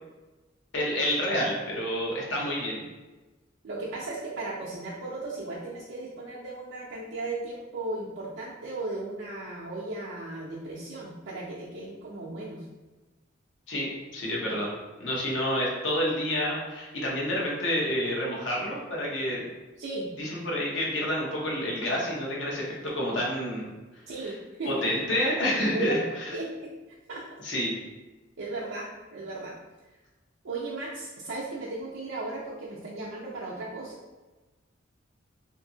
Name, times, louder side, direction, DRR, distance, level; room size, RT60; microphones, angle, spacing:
voice 1, 0.7-2.8 13.7-14.7 15.0-19.5 20.2-23.7 24.2-24.3 24.6-26.3 27.4-27.7, equal, 80° left, -3 dB, 0.8 m, -29 dB
voice 2, 3.6-12.7 19.8-20.1 24.1-24.7 25.7-26.0 26.3-26.7 27.1-27.3 28.4-29.6 30.4-34.0, right 2 dB, 90° right, -6 dB, 0.5 m, -36 dB
2.7 x 2.6 x 2.6 m, 1.2 s
head